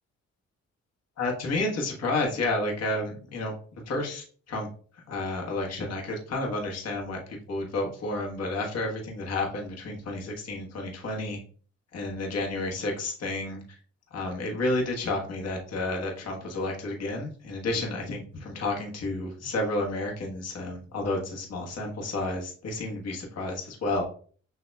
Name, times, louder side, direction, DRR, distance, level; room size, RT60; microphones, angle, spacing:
voice 1, 1.2-3.5 3.9-4.7 5.1-11.4 11.9-13.6 14.1-24.0, left 2 dB, 55° left, 0 dB, 1.3 m, -31 dB
6.6 x 2.7 x 2.3 m, 0.43 s
cardioid pair, 90°, 30 cm